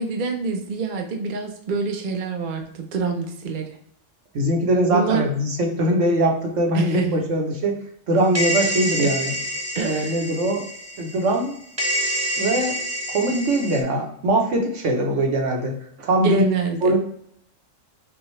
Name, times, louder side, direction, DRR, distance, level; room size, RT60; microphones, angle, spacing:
voice 1, 0.0-3.7 4.9-5.2 6.7-7.1 9.0-9.1 9.7-10.2 16.2-16.8, right 4 dB, 50° right, 3 dB, 0.7 m, -25 dB
voice 2, 4.3-7.8 8.1-9.4 9.8-10.6 11.0-11.5 12.4-12.8 13.1-16.4 16.8-17.0, right 1 dB, 70° right, 1 dB, 1.2 m, -21 dB
sound 1, 8.3-11.5 11.8-13.8, equal, 15° right, 1.0 m, -27 dB
5.9 x 2.4 x 3.1 m, 0.68 s
omnidirectional pair, 1.3 m